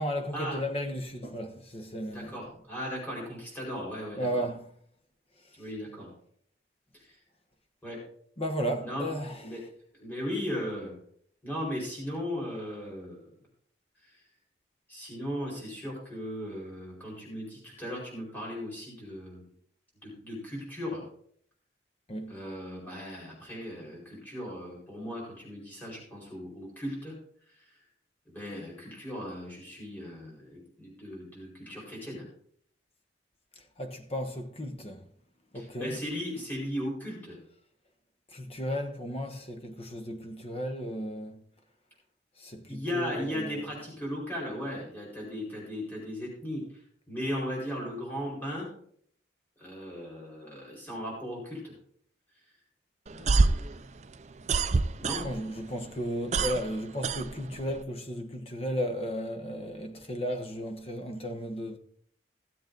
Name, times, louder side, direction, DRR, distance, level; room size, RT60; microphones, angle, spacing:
voice 1, 0.0-2.4 4.1-4.7 8.4-9.7 22.1-22.4 33.8-35.0 35.5-36.0 38.3-41.4 42.4-43.8 55.2-61.8, equal, 30° left, 1.2 m, -34 dB
voice 2, 2.1-4.4 5.6-6.1 6.9-7.2 7.8-8.0 8.8-9.1 9.4-9.6 10.0-11.0 11.4-13.2 14.0-14.2 14.9-19.5 20.0-21.0 22.3-27.1 28.2-32.2 35.5-37.4 42.7-46.8 47.1-48.7 49.6-51.7 53.1-53.8 55.0-55.2, equal, 10° left, 4.9 m, -37 dB
sound 1, 53.1-55.6 55.9-57.8, right 3 dB, 35° right, 0.4 m, -26 dB
16.0 x 7.6 x 4.0 m
head